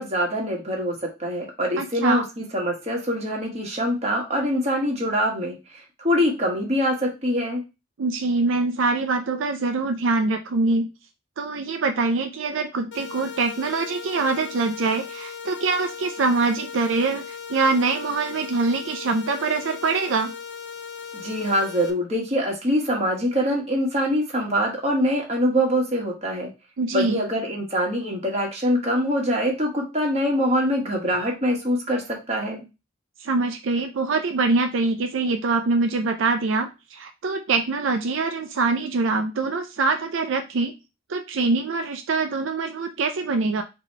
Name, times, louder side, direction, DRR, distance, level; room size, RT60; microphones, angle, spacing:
voice 1, 0.0-7.6 21.1-26.5 26.9-32.6, equal, 35° right, -1 dB, 1.4 m, -24 dB
voice 2, 1.8-2.2 8.0-10.9 11.4-20.3 26.8-27.2 33.2-40.7 41.1-43.6, right 3 dB, 80° right, 6 dB, 0.5 m, -24 dB
sound 1, 12.9-21.9, left 7 dB, 65° left, 0.7 m, -38 dB
4.0 x 2.9 x 4.4 m, 0.27 s
head